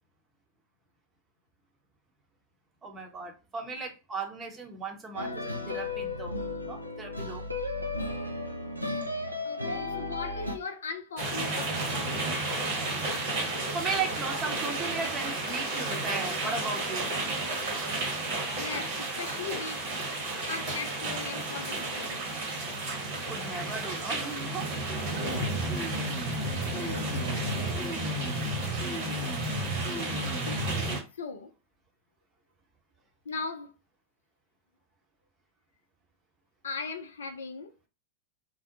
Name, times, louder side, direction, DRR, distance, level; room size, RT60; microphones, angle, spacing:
voice 1, 2.8-7.4 13.7-17.1 23.3-25.0, right 4 dB, 20° right, 0.7 m, -36 dB
sound 1, 5.1-10.6, left 2 dB, 90° right, 0.3 m, -34 dB
voice 2, 9.4-12.1 18.6-19.9 20.5-22.2 26.8-27.7 30.5-30.7 31.1-31.5 33.3-33.7 36.6-37.7, left 4 dB, 65° left, 0.4 m, -39 dB
sound 2, 11.2-31.0, right 2 dB, 50° right, 1.1 m, -33 dB
sound 3, 25.3-31.0, equal, 25° left, 1.0 m, -34 dB
2.5 x 2.0 x 2.8 m
figure-of-eight pair, 90°, 0 cm